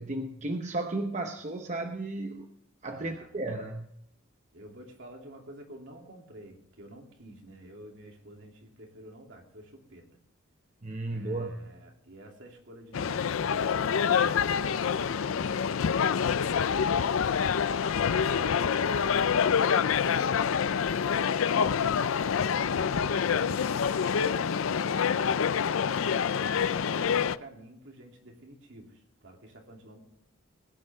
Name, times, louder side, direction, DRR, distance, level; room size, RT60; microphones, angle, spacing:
voice 1, 0.0-2.5 2.8-3.9 10.8-11.8, right 2 dB, 35° right, 0.8 m, -34 dB
voice 2, 2.9-3.3 4.5-10.1 11.0-17.5 18.0-19.3 19.6-24.2 24.6-25.7 26.1-30.0, right 1 dB, 65° right, 2.9 m, -50 dB
sound 1, 12.9-27.4, left 7 dB, 80° left, 0.5 m, -26 dB
20.0 x 10.5 x 3.5 m
head